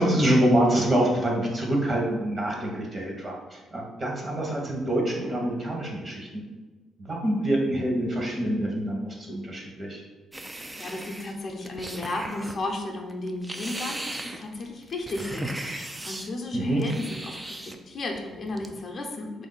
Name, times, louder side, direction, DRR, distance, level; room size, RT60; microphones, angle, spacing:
voice 1, 0.0-6.4 7.0-10.0 16.5-16.8, right 1 dB, 35° right, -1 dB, 1.0 m, -26 dB
sound 1, 10.3-12.6 13.1-16.3 16.8-17.8 18.2-18.8, right 1 dB, 15° right, 0.3 m, -37 dB
voice 2, 10.5-19.5, left 2 dB, 45° left, 1 dB, 0.6 m, -34 dB
3.6 x 2.6 x 3.9 m, 1.2 s
cardioid pair, 90°, 0 cm